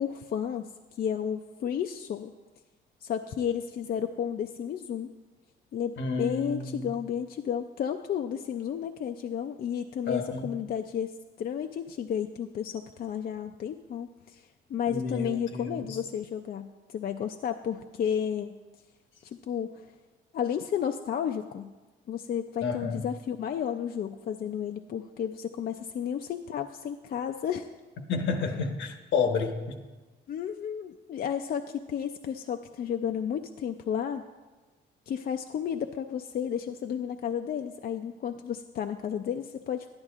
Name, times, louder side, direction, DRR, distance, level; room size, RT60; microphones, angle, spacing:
voice 1, 0.0-2.3 3.0-5.1 5.7-18.6 19.2-19.7 20.3-21.7 22.1-27.7 30.3-34.2 35.1-39.9, left 8 dB, 50° left, 6 dB, 0.4 m, -32 dB
voice 2, 6.0-6.9 10.1-10.5 14.9-16.0 22.6-23.1 28.1-29.8, left 4 dB, 75° left, 5 dB, 1.0 m, -30 dB
11.0 x 10.5 x 2.4 m, 1.3 s
cardioid pair, 90°, 20 cm